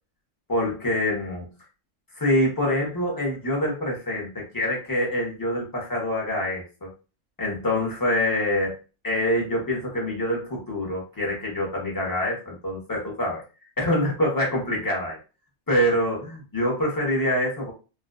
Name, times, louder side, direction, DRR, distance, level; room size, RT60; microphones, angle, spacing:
voice 1, 0.5-1.5 2.2-6.9 7.4-8.8 9.0-13.4 13.8-15.2 15.7-17.7, left 1 dB, 20° left, -3 dB, 0.7 m, -25 dB
2.5 x 2.2 x 2.3 m, 0.33 s
omnidirectional pair, 1.4 m